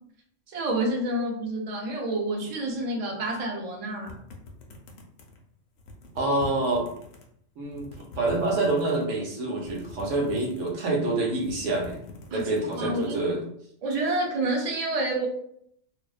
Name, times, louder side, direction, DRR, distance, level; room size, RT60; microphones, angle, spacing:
voice 1, 0.5-4.1 12.3-12.5 12.8-13.2 13.8-15.3, right 1 dB, 50° right, 0 dB, 0.4 m, -28 dB
sound 1, 4.1-5.4 5.8-7.2 7.6-9.1 9.6-10.9 11.3-13.1, left 2 dB, 75° left, 0.9 m, -44 dB
voice 2, 6.1-6.9 7.6-13.4, right 2 dB, 80° right, 0 dB, 1.0 m, -27 dB
2.5 x 2.1 x 2.3 m, 0.70 s
omnidirectional pair, 1.3 m